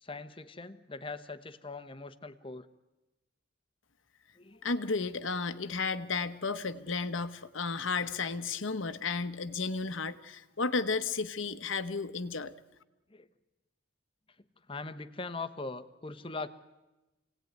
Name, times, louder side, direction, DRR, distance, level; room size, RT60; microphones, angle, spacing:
voice 1, 0.0-2.7 4.4-5.0 13.1-13.3 14.7-16.5, left 3 dB, 25° left, 11 dB, 1.0 m, -41 dB
voice 2, 4.6-12.5, left 4 dB, 80° left, 12 dB, 1.1 m, -33 dB
27.0 x 18.0 x 9.4 m, 1.1 s
head